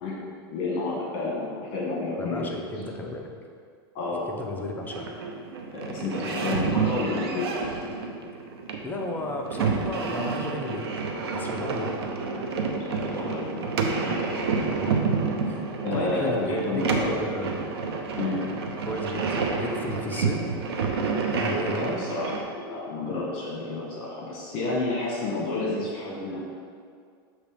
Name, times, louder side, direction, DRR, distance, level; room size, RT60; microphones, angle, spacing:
voice 1, 0.0-2.5 3.9-4.3 5.7-7.5 12.7-13.7 14.0-14.2 15.8-17.3 18.2-18.4 21.7-26.4, left 3 dB, 45° left, -4 dB, 1.4 m, -30 dB
voice 2, 2.2-3.3 4.3-5.2 8.8-10.9 11.3-12.0 14.7-14.9 15.5-15.6 15.9-17.5 18.8-20.4 21.3-22.0, left 1 dB, 15° left, 1 dB, 0.6 m, -33 dB
sound 1, 4.8-22.4, right 4 dB, 90° right, 0.8 m, -29 dB
6.8 x 3.1 x 5.1 m, 2.1 s
supercardioid pair, 130°, 13 cm